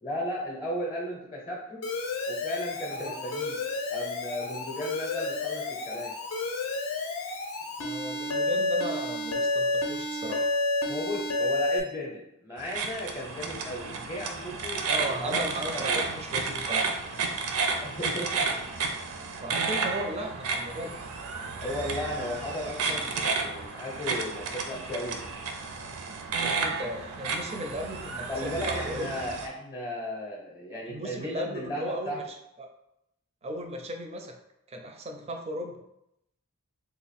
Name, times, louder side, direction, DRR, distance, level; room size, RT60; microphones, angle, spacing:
voice 1, 0.0-1.8 2.3-3.6 3.9-6.1 10.9-15.4 15.7-16.0 17.8-18.5 21.6-25.2 28.3-32.2, left 1 dB, 20° left, -3 dB, 0.6 m, -35 dB
Alarm, 1.8-11.8, left 2 dB, 65° left, 0.6 m, -30 dB
voice 2, 7.8-10.5 14.8-16.8 19.4-20.9 26.4-29.1 30.9-32.2 32.6-32.7 33.4-34.3 34.7-35.8, right 1 dB, 30° right, 3 dB, 0.4 m, -36 dB
sound 1, 12.6-29.5, right 4 dB, 80° right, 0.5 m, -32 dB
3.4 x 2.1 x 4.1 m, 0.83 s
head